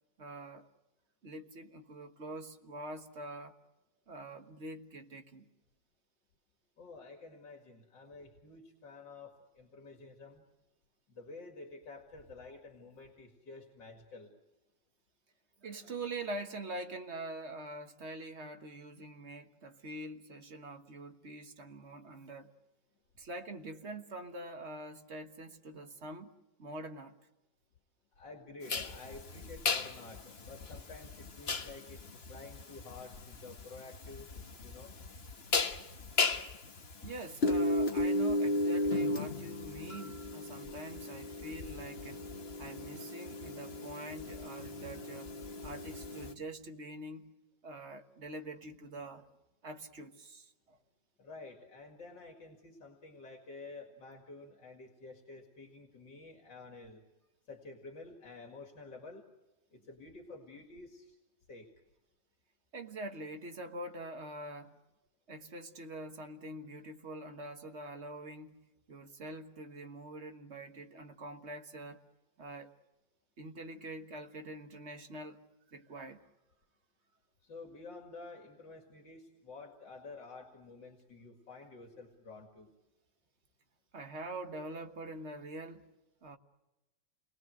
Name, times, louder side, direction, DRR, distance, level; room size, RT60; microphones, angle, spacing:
voice 1, 0.2-0.7 1.2-3.5 4.1-5.5 15.6-22.5 23.2-26.3 26.6-27.1 37.0-42.3 42.6-45.3 45.6-47.3 47.6-49.3 49.6-50.8 62.7-64.7 65.3-72.0 72.4-72.7 73.4-76.3 83.9-85.9 86.2-86.4, right 2 dB, 40° right, 1.5 m, -45 dB
voice 2, 6.8-10.4 11.1-14.3 28.1-34.3 34.6-35.0 51.2-57.0 57.5-59.3 59.7-61.2 61.5-61.7 77.4-82.7, left 3 dB, 75° left, 2.9 m, -50 dB
sound 1, 28.7-46.3, left 2 dB, 35° left, 1.4 m, -35 dB
28.5 x 21.0 x 7.8 m
omnidirectional pair, 2.0 m